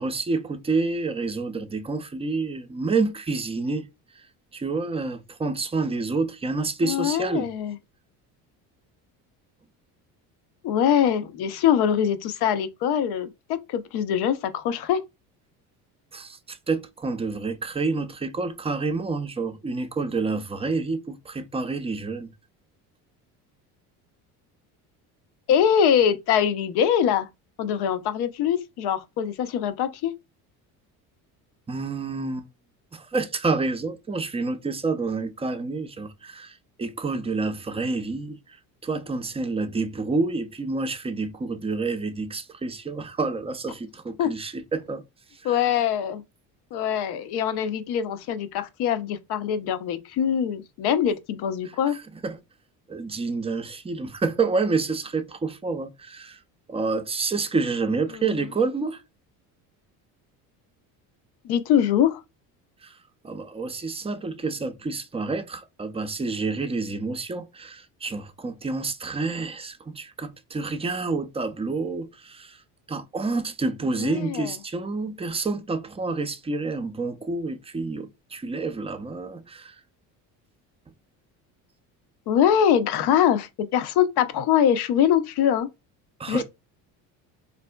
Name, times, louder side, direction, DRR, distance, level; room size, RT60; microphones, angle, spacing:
voice 1, 0.0-3.9 4.1-4.3 4.5-7.5 16.1-22.3 31.7-32.5 32.9-38.6 38.8-45.0 45.3-45.6 51.9-52.4 52.9-56.4 56.7-59.0 62.8-63.0 63.2-72.6 72.9-79.8 86.2-86.4, right 3 dB, 15° right, 0.5 m, -28 dB
voice 2, 6.8-7.8 10.6-15.0 25.5-27.3 27.6-30.1 44.2-44.3 45.4-46.2 46.7-52.0 58.1-58.2 61.4-62.2 73.9-74.5 82.3-85.7 86.3-86.4, left 9 dB, 65° left, 0.7 m, -23 dB
4.1 x 2.6 x 2.2 m
supercardioid pair, 75°, 43 cm